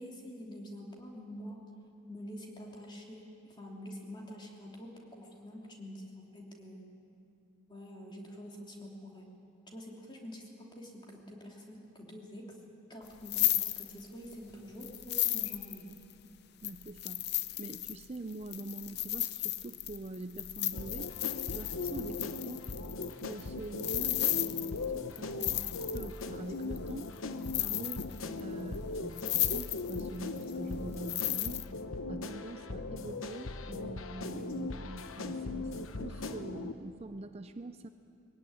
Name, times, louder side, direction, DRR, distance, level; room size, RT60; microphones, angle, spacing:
voice 1, 0.0-1.6 2.1-6.9 7.7-9.3 9.7-12.6 12.9-15.9, equal, 25° left, -1 dB, 3.0 m, -47 dB
sound 1, 13.1-14.3 14.8-16.1 16.6-26.2 26.8-27.2 27.4-28.4 28.7-28.8 29.2-30.1 30.4-31.7, left 15 dB, 55° left, 0.6 m, -34 dB
voice 2, 16.6-17.3 17.6-21.1 21.5-22.7 23.2-27.1 27.6-31.6 32.1-37.9, right 2 dB, 30° right, 9 dB, 0.5 m, -44 dB
sound 2, 20.7-36.7, left 3 dB, 85° left, 1.0 m, -39 dB
21.5 x 16.5 x 9.7 m, 2.7 s
head